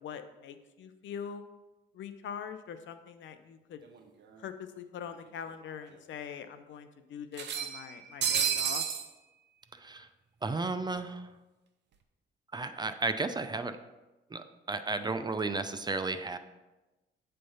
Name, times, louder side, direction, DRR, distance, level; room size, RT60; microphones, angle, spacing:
voice 1, 0.0-1.4 1.9-3.8 4.4-8.8, left 7 dB, 70° left, 9 dB, 0.7 m, -43 dB
sound 1, 3.9-4.0 4.3-4.4 5.5-5.6 5.9-6.0 7.3-9.1, right 8 dB, 60° right, 0.8 m, -31 dB
voice 2, 10.4-11.2 12.5-13.7 14.3-16.4, right 3 dB, 20° right, 9 dB, 0.5 m, -33 dB
8.8 x 3.4 x 5.4 m, 1.1 s
cardioid pair, 90°, 20 cm